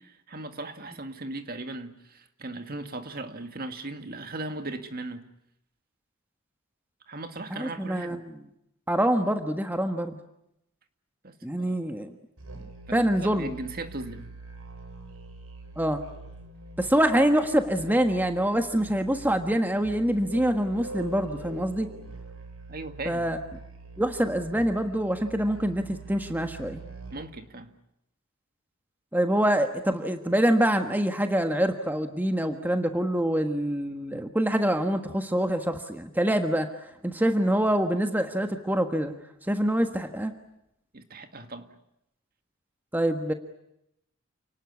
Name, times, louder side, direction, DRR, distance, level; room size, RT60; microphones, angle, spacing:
voice 1, 0.0-5.3 7.1-8.2 11.2-11.8 12.9-14.3 22.7-23.3 27.1-27.7 40.9-41.7, right 2 dB, 45° right, 8 dB, 2.0 m, -38 dB
voice 2, 7.5-8.3 8.9-10.2 11.4-12.1 12.9-13.5 15.8-16.0 16.8-21.9 23.0-23.4 24.0-26.8 29.1-36.7 37.0-39.1 39.5-40.3 42.9-43.3, right 1 dB, 10° right, 6 dB, 1.4 m, -25 dB
Musical instrument, 12.4-27.4, right 2 dB, 75° right, 4.9 m, -44 dB
29.5 x 19.0 x 9.6 m, 0.81 s
head